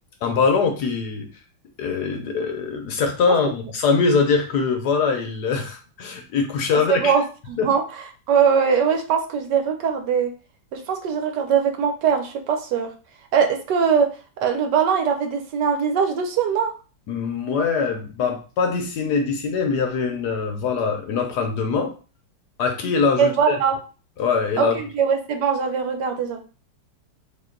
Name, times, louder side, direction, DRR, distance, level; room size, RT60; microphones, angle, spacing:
voice 1, 0.2-1.3 1.8-7.1 7.6-7.7 17.1-21.9 22.6-23.6 24.2-24.7, left 5 dB, 70° left, 4 dB, 1.1 m, -22 dB
voice 2, 6.9-7.2 7.5-7.8 8.3-10.3 10.7-12.9 13.3-14.1 14.4-16.7 23.2-23.7 24.6-26.4, right 7 dB, 70° right, 5 dB, 1.2 m, -21 dB
3.8 x 2.9 x 3.7 m, 0.35 s
omnidirectional pair, 2.1 m